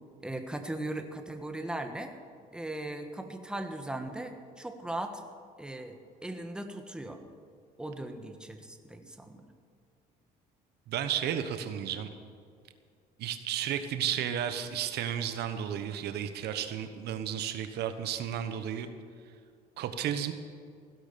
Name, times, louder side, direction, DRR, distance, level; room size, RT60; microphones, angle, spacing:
voice 1, 0.2-2.1 2.5-5.2 5.6-7.2 7.8-9.4, right 1 dB, 5° right, 6 dB, 1.5 m, -38 dB
voice 2, 10.9-12.1 13.2-18.9 19.8-20.3, right 9 dB, 75° right, 9 dB, 1.2 m, -33 dB
16.0 x 11.5 x 6.9 m, 2.2 s
cardioid pair, 110°, 17 cm